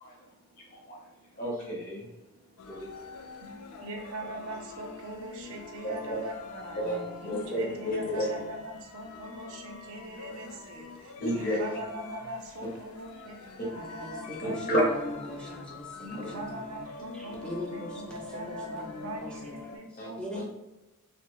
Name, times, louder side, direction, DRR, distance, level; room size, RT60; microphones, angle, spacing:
voice 1, 0.7-1.1 1.3-2.1 2.6-2.9 5.8-6.2 6.8-7.0 7.2-8.3 11.2-11.7 14.4-14.8 16.2-16.3 20.0-20.1 20.4-20.5, equal, 40° left, -3 dB, 0.7 m, -31 dB
sound 1, 2.6-19.8, left 5 dB, 75° left, 0.3 m, -45 dB
voice 2, 3.8-14.9 15.4-15.6 16.0-20.4, right 1 dB, 65° right, 3 dB, 0.5 m, -41 dB
voice 3, 14.0-16.9 17.1-19.6 19.9-20.4, left 1 dB, 5° left, -3 dB, 0.4 m, -41 dB
2.7 x 2.1 x 2.9 m, 0.99 s
head